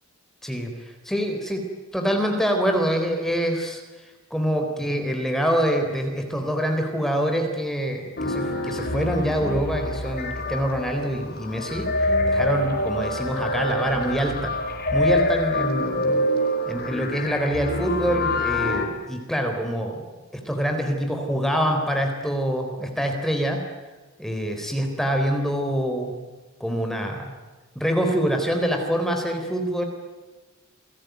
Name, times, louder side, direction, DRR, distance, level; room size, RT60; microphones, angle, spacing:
voice 1, 0.4-1.6 1.9-3.8 4.3-11.9 12.3-14.5 14.9-16.2 16.7-20.0 20.3-23.6 24.2-26.1 26.6-27.3 27.8-29.8, equal, ahead, 3 dB, 3.9 m, -25 dB
sound 1, 8.2-18.8, left 1 dB, 45° left, 5.0 m, -26 dB
28.5 x 20.5 x 9.3 m, 1.2 s
head